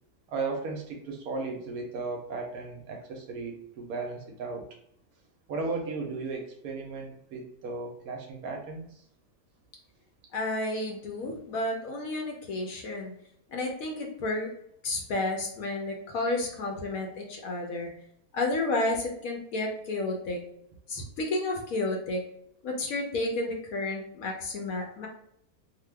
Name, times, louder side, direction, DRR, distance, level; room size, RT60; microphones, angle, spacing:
voice 1, 0.3-4.6 5.5-9.0, right 3 dB, 70° right, 2 dB, 0.9 m, -35 dB
voice 2, 10.3-13.1 13.5-14.5 14.8-17.9 18.3-20.4 20.9-22.2 22.6-25.1, left 2 dB, 65° left, 0 dB, 0.9 m, -31 dB
2.8 x 2.2 x 3.2 m, 0.72 s
omnidirectional pair, 1.8 m